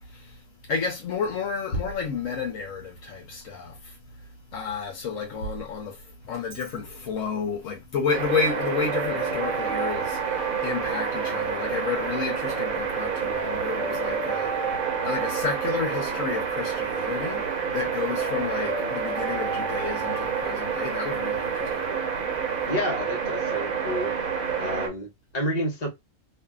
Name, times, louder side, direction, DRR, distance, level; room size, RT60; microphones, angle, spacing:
voice 1, 0.0-0.4 0.7-4.0 4.5-14.7 15.0-21.9, left 5 dB, 70° left, 1.0 m, -31 dB
Alarm, 6.3-6.7 8.4-12.2 13.3-17.1 18.2-21.4, right 2 dB, 40° right, 0.6 m, -36 dB
sound 1, 8.1-24.9, right 6 dB, 85° right, 1.2 m, -28 dB
voice 2, 22.6-24.2 24.6-25.9, equal, 35° left, 1.0 m, -29 dB
2.7 x 2.6 x 2.2 m
omnidirectional pair, 1.4 m